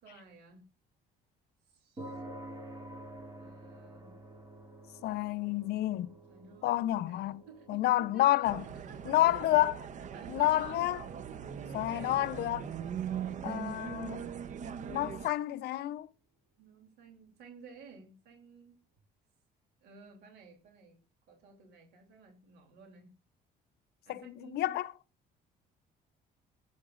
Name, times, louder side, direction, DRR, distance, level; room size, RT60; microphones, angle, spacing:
voice 1, 0.0-0.7 1.6-2.2 3.4-4.2 6.3-6.8 7.1-8.2 8.7-9.5 10.1-10.9 11.7-12.2 13.2-13.5 16.6-18.8 19.8-21.0 21.3-23.1 24.0-24.7, right 5 dB, 80° right, 3.0 m, -54 dB
sound 1, 2.0-18.5, right 1 dB, 20° right, 2.6 m, -53 dB
voice 2, 5.0-6.1 6.6-7.4 7.7-8.6 9.1-9.7 10.3-11.0 11.7-12.6 13.4-14.2 14.9-16.1 24.1-24.9, left 15 dB, 75° left, 0.7 m, -29 dB
sound 2, 8.4-15.3, right 8 dB, 45° right, 0.7 m, -40 dB
16.0 x 9.3 x 2.5 m
cardioid pair, 110°, 17 cm